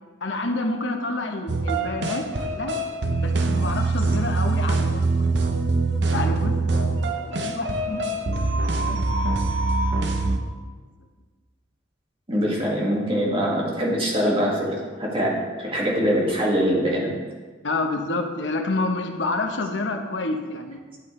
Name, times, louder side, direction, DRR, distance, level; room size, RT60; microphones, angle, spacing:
voice 1, 0.2-2.8 3.2-5.3 6.1-8.2 8.6-9.8 10.1-10.4 17.6-20.8, left 2 dB, 85° left, 4 dB, 1.0 m, -29 dB
sound 1, 1.5-10.4, right 3 dB, 65° right, 0.7 m, -24 dB
voice 2, 12.3-17.1, equal, 30° right, -3 dB, 1.9 m, -23 dB
11.5 x 7.6 x 3.2 m, 1.4 s
head